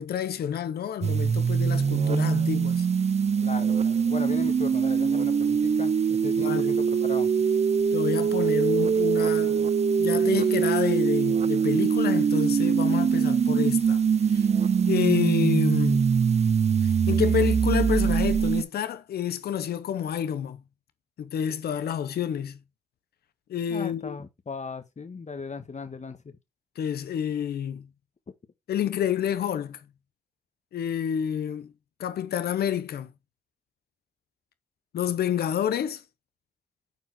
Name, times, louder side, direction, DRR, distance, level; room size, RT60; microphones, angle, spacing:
voice 1, 0.0-2.9 6.4-6.8 7.9-9.6 10.0-14.5 14.8-16.1 16.8-20.6 21.2-22.6 23.5-24.2 26.8-27.9 28.7-29.8 30.7-31.7 32.0-33.1 34.9-36.0, left 9 dB, 80° left, 0.8 m, -29 dB
sound 1, 1.0-18.6, right 6 dB, 45° right, 0.5 m, -23 dB
voice 2, 3.4-7.3 23.7-26.2, left 4 dB, 45° left, 1.4 m, -37 dB
6.3 x 4.5 x 4.8 m
supercardioid pair, 40°, 16 cm